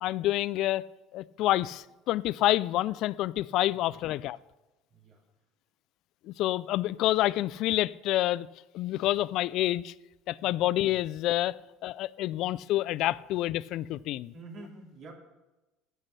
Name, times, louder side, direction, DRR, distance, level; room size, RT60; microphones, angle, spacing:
voice 1, 0.0-0.9 1.1-4.4 6.3-8.5 8.7-9.9 10.3-11.6 11.8-14.3, left 15 dB, 60° left, 0.3 m, -28 dB
voice 2, 3.7-4.0 4.9-5.2 10.4-10.6 12.3-12.4 14.0-14.1 14.3-15.1, right 3 dB, 55° right, 2.9 m, -48 dB
9.7 x 8.2 x 6.5 m
supercardioid pair, 100°, 0 cm